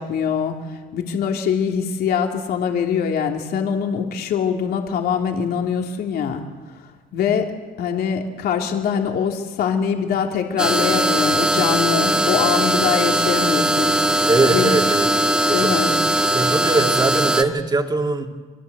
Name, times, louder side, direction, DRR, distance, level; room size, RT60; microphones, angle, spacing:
voice 1, 0.0-6.4 7.1-7.5 7.8-14.8 15.5-15.9, left 7 dB, 65° left, 2 dB, 3.2 m, -23 dB
sound 1, 10.6-17.4, right 1 dB, 5° right, 2.0 m, -19 dB
voice 2, 14.3-15.2 15.5-16.1 16.3-18.3, right 3 dB, 25° right, 3 dB, 2.9 m, -21 dB
29.5 x 23.0 x 8.2 m, 1.4 s
cardioid pair, 110°, 17 cm